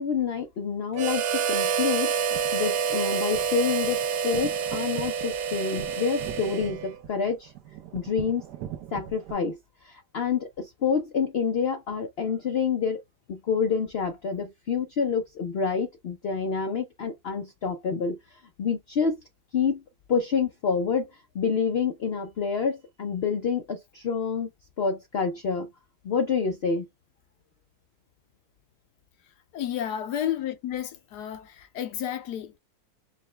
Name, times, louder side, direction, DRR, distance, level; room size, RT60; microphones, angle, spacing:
voice 1, 0.0-7.5 7.9-8.4 8.9-9.6 9.8-13.0 13.3-18.2 18.6-19.2 19.5-19.8 20.1-21.1 21.3-24.5 24.8-25.7 26.0-26.9, left 6 dB, 65° left, 0.6 m, -27 dB
Harmonica, 0.9-7.0, right 7 dB, 70° right, 0.9 m, -28 dB
sound 1, 2.1-9.3, right 10 dB, 90° right, 1.3 m, -42 dB
voice 2, 29.5-32.6, left 10 dB, 85° left, 1.3 m, -31 dB
4.9 x 2.2 x 3.2 m
omnidirectional pair, 1.7 m